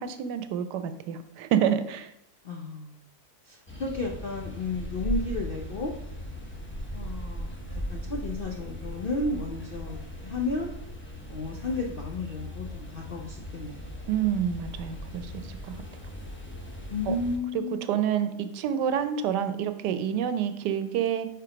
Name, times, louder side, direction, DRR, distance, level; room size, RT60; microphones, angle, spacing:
voice 1, 0.0-2.1 14.1-15.3 15.7-15.8 17.1-17.2 17.5-17.6 17.9-21.3, right 9 dB, 85° right, 10 dB, 1.2 m, -28 dB
voice 2, 2.4-3.0 3.4-5.9 6.9-7.5 7.9-10.7 11.3-13.8 16.9-17.9, left 3 dB, 60° left, 0 dB, 0.5 m, -33 dB
sound 1, 3.7-17.4, equal, 10° left, 0.7 m, -38 dB
5.5 x 4.5 x 4.9 m, 0.75 s
omnidirectional pair, 1.8 m